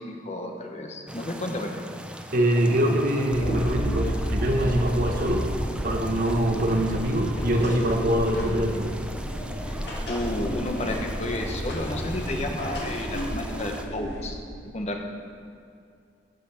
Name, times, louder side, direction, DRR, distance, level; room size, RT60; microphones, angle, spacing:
voice 1, 0.0-1.7 10.1-14.4 14.6-15.1, left 1 dB, 40° left, 3 dB, 1.1 m, -31 dB
sound 1, 1.1-13.9, right 1 dB, 5° right, 0.5 m, -39 dB
voice 2, 2.3-5.4 5.8-8.9, right 1 dB, 50° right, 2 dB, 1.2 m, -24 dB
sound 2, 3.3-14.3, equal, 65° left, 1.9 m, -31 dB
12.5 x 5.9 x 5.8 m, 2.4 s
head